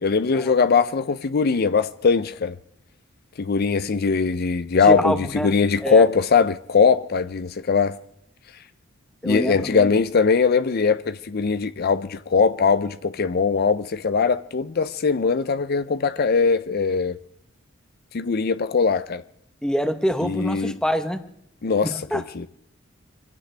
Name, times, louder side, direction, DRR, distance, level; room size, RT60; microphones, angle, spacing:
voice 1, 0.0-2.6 3.4-8.0 9.2-17.2 18.1-19.2 20.2-20.7 21.6-22.5, left 5 dB, 50° left, 0.5 m, -21 dB
voice 2, 5.0-5.5 5.8-6.1 9.2-9.9 19.6-21.2 21.8-22.5, equal, 5° left, 1.0 m, -25 dB
25.0 x 16.0 x 3.3 m
head